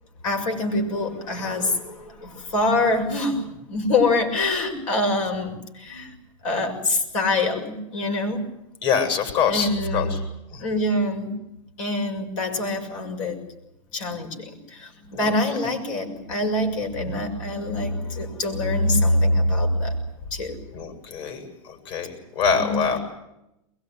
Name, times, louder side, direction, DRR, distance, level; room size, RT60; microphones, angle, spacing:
voice 1, 0.2-6.1 6.4-8.4 9.4-10.1 10.6-11.4 11.8-13.4 13.9-20.0 20.3-20.6 22.6-22.9, left 2 dB, 90° left, 4 dB, 6.6 m, -25 dB
voice 2, 8.8-10.2 10.5-10.7 15.1-15.3 17.0-17.1 20.7-23.0, left 6 dB, 60° left, 6 dB, 7.5 m, -25 dB
22.5 x 22.0 x 9.8 m, 0.88 s
supercardioid pair, 125°, 16 cm